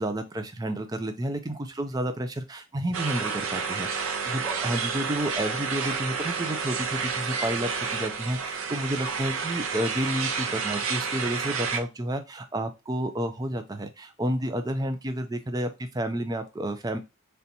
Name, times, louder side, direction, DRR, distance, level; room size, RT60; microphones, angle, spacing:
voice 1, 0.0-17.0, right 1 dB, 15° right, 7 dB, 0.4 m, -30 dB
sound 1, 2.9-11.8, right 5 dB, 75° right, 0.6 m, -30 dB
3.4 x 2.8 x 4.0 m, 0.25 s
head